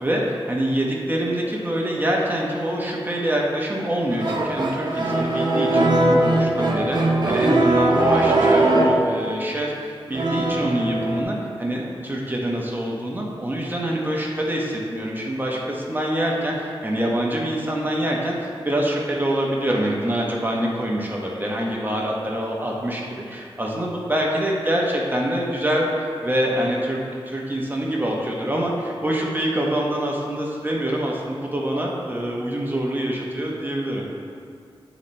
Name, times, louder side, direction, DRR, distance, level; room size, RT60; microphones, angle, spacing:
voice 1, 0.0-23.0 23.3-25.9 26.2-27.0 27.3-34.0, right 1 dB, 20° right, -2 dB, 1.1 m, -25 dB
sound 1, 4.1-9.1 10.1-11.2, right 2 dB, 45° right, 0.8 m, -20 dB
8.2 x 4.0 x 4.3 m, 2.2 s
wide cardioid pair, 70°, 10 cm